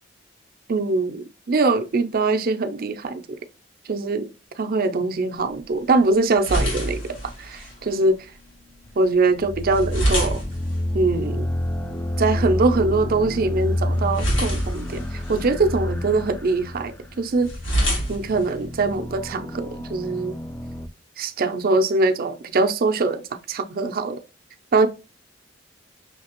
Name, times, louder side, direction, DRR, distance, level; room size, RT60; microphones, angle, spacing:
voice 1, 0.7-3.4 3.9-4.3 4.6-8.3 9.0-10.4 10.9-11.5 12.2-17.5 18.1-20.3 21.2-23.2 23.5-24.2 24.7-24.9, right 3 dB, 50° right, 0.5 m, -22 dB
sound 1, 5.4-19.3, equal, 90° left, 1.9 m, -30 dB
sound 2, 9.4-20.9, left 1 dB, 10° left, 0.3 m, -29 dB
5.7 x 2.8 x 2.9 m
head